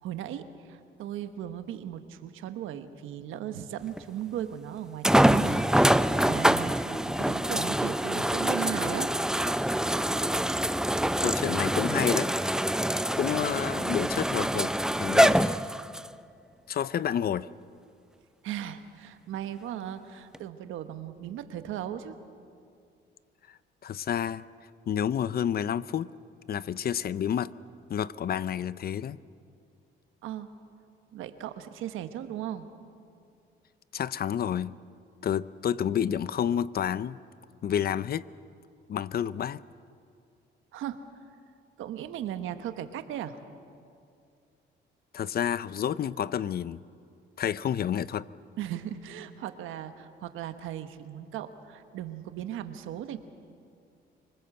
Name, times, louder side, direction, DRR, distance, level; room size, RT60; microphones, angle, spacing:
voice 1, 0.0-9.1 18.4-22.1 30.2-30.5 31.1-32.7 40.7-41.0 41.8-43.4 48.6-53.2, right 11 dB, 90° right, 9 dB, 1.3 m, -37 dB
sound 1, 4.0-4.1 5.0-16.1 16.8-16.9 20.3-20.4, right 1 dB, 5° right, 0.5 m, -25 dB
voice 2, 11.2-12.3 13.2-15.5 16.7-17.5 23.8-24.4 24.9-26.1 26.5-27.5 27.9-29.2 33.9-34.7 35.2-37.2 37.6-38.3 38.9-39.6 45.1-46.8 47.4-48.3, left 9 dB, 50° left, 18 dB, 0.6 m, -29 dB
25.5 x 19.5 x 7.7 m, 2.4 s
cardioid pair, 90°, 20 cm